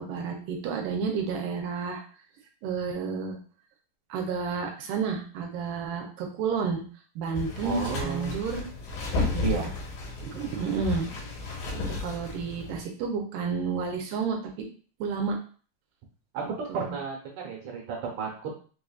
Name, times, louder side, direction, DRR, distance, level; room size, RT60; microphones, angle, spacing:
voice 1, 0.0-2.0 2.6-3.4 4.1-6.8 7.2-8.7 9.3-9.7 10.2-11.1 11.7-14.7 15.0-15.4 16.4-17.0, right 5 dB, 85° right, 2 dB, 2.2 m, -31 dB
sound 1, 7.4-12.8, left 3 dB, 80° left, 2.7 m, -33 dB
voice 2, 7.6-8.4 9.4-9.7 11.4-11.6 16.3-18.5, right 6 dB, 65° right, -1 dB, 2.1 m, -33 dB
5.6 x 2.5 x 2.3 m, 0.40 s
omnidirectional pair, 4.0 m